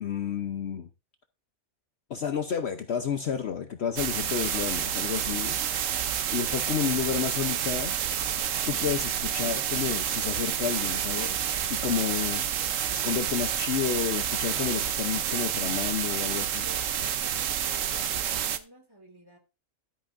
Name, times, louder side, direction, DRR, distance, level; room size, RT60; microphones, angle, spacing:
voice 1, 0.0-0.9 2.1-5.6 6.3-7.9 8.7-11.4 11.7-12.4 13.0-16.7, left 8 dB, 55° left, 1.0 m, -30 dB
sound 1, 4.0-18.6, right 9 dB, 70° right, 1.1 m, -29 dB
voice 2, 16.6-17.2 17.7-19.4, right 1 dB, 15° right, 2.1 m, -51 dB
12.5 x 8.8 x 2.6 m
omnidirectional pair, 1.4 m